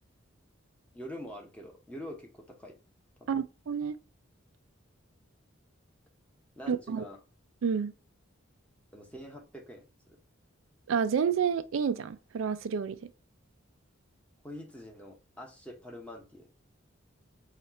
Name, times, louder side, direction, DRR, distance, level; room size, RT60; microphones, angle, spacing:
voice 1, 0.9-2.7 3.2-3.3 6.6-7.2 8.9-10.2 14.4-16.5, equal, 5° left, 0.9 m, -45 dB
voice 2, 3.3-4.0 6.7-7.0 7.6-7.9 10.9-13.0, right 6 dB, 80° right, 0.4 m, -29 dB
4.3 x 2.4 x 4.2 m
head